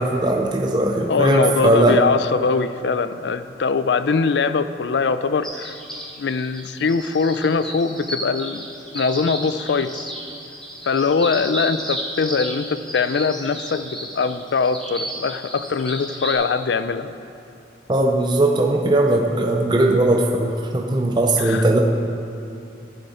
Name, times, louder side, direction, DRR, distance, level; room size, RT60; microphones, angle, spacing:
voice 1, 0.0-2.0 17.9-21.8, right 2 dB, 25° right, 1 dB, 0.5 m, -19 dB
voice 2, 1.1-5.8 6.2-8.7 8.9-10.1 10.8-17.1 21.4-21.7, left 5 dB, 75° left, 12 dB, 0.4 m, -22 dB
sound 1, 5.4-16.3, right 1 dB, 5° left, 1.7 m, -33 dB
12.0 x 10.0 x 4.2 m, 2.8 s
head